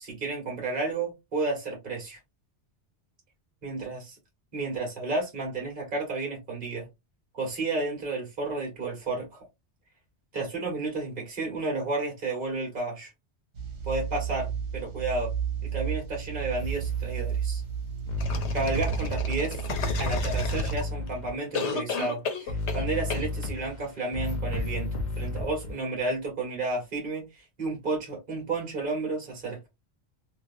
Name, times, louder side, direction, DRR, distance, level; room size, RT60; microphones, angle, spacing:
voice 1, 0.0-2.2 3.6-4.2 4.5-6.9 7.3-9.4 10.3-13.1 13.8-15.3 15.6-17.6 18.5-19.6 20.0-24.9 25.2-29.6, right 3 dB, 45° right, 1.7 m, -32 dB
sound 1, 13.5-20.8, right 8 dB, 70° right, 1.4 m, -32 dB
sound 2, 16.6-17.0 18.1-21.4 22.5-25.8, left 2 dB, 45° left, 0.8 m, -32 dB
Bong Hit and Cough, 18.2-21.1 21.5-22.8 23.1-23.3, left 4 dB, 85° left, 1.1 m, -33 dB
3.2 x 2.8 x 2.5 m
omnidirectional pair, 1.1 m